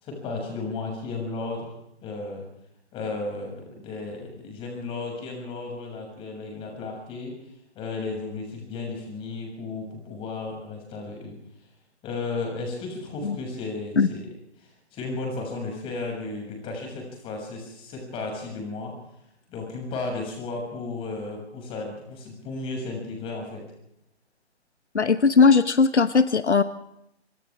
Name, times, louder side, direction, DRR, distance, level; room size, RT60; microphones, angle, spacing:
voice 1, 0.0-1.7 2.0-2.5 2.9-11.4 12.0-14.3 14.6-19.0 19.5-23.6, left 3 dB, 15° left, 1 dB, 7.0 m, -34 dB
voice 2, 24.9-26.6, left 5 dB, 80° left, 13 dB, 1.2 m, -18 dB
29.0 x 26.0 x 3.6 m, 0.81 s
figure-of-eight pair, 145°, 34 cm